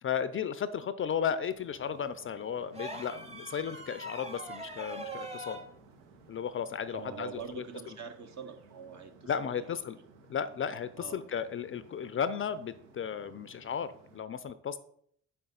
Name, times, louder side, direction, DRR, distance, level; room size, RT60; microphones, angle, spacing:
voice 1, 0.0-5.6 6.3-7.6 9.3-10.0 10.3-14.8, left 7 dB, 35° left, 14 dB, 0.4 m, -34 dB
sound 1, 1.5-14.2, right 4 dB, 85° right, 0.7 m, -58 dB
sound 2, 2.7-5.7 7.4-7.5, right 1 dB, 15° right, 1.0 m, -42 dB
voice 2, 6.9-9.7 11.0-11.3, right 6 dB, 50° right, 6 dB, 1.0 m, -44 dB
5.6 x 5.2 x 3.9 m, 0.65 s
hypercardioid pair, 40°, 36 cm